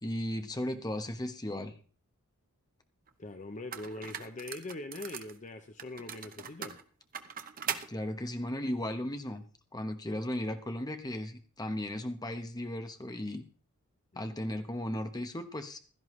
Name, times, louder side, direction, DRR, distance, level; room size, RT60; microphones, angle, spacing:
voice 1, 0.0-1.7 7.9-9.4 9.7-13.4 14.1-15.8, left 1 dB, 15° left, 6 dB, 1.1 m, -36 dB
sound 1, 3.1-3.2 3.7-5.4 5.8-7.9, right 8 dB, 40° right, 0.9 m, -40 dB
voice 2, 3.2-6.8 14.1-14.3, left 2 dB, 35° left, 7 dB, 0.8 m, -42 dB
16.0 x 13.0 x 3.2 m, 0.39 s
head